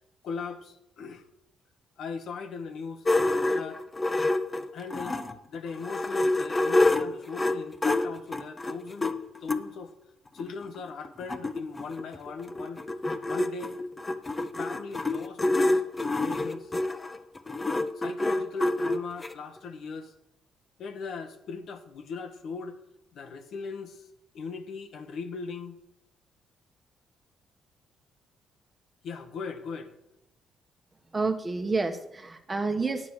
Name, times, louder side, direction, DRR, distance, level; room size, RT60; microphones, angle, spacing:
voice 1, 0.2-1.3 2.0-3.8 4.7-5.2 5.5-9.1 9.4-9.9 10.3-12.8 13.2-13.8 14.5-16.7 17.9-20.1 20.8-22.8 23.1-24.1 24.3-25.8 29.0-29.9, left 5 dB, 70° left, 1.1 m, -39 dB
sound 1, 3.0-5.4 5.8-9.6 10.4-10.5 10.8-10.9 11.0-19.3, left 2 dB, 25° left, 0.9 m, -27 dB
voice 2, 31.1-33.1, right 3 dB, 25° right, 1.2 m, -29 dB
9.5 x 7.6 x 6.5 m
cardioid pair, 90°, 0 cm